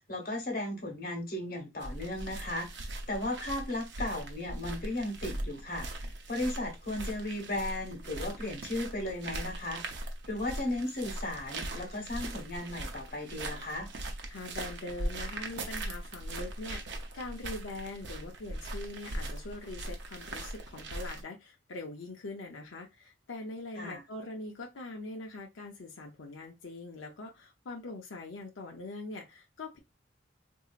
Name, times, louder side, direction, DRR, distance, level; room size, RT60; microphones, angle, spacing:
voice 1, 0.1-2.7 3.1-5.9 6.3-9.8 10.3-13.9 23.8-24.0, left 1 dB, 50° left, 1.2 m, -35 dB
sound 1, 1.8-21.2, right 1 dB, 70° right, 0.7 m, -40 dB
voice 2, 14.3-29.8, left 2 dB, 90° left, 0.6 m, -43 dB
3.9 x 2.7 x 2.4 m
head